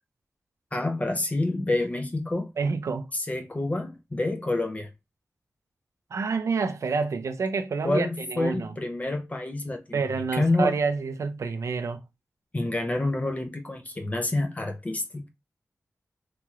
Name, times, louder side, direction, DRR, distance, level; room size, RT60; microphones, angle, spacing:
voice 1, 0.7-2.5 3.1-4.9 7.8-10.0 10.3-10.8 12.5-15.3, left 2 dB, 30° left, 0.6 m, -28 dB
voice 2, 2.6-3.1 6.1-8.7 9.9-12.0, right 4 dB, 70° right, 0.4 m, -28 dB
3.0 x 2.9 x 2.3 m
wide cardioid pair, 85°, 5 cm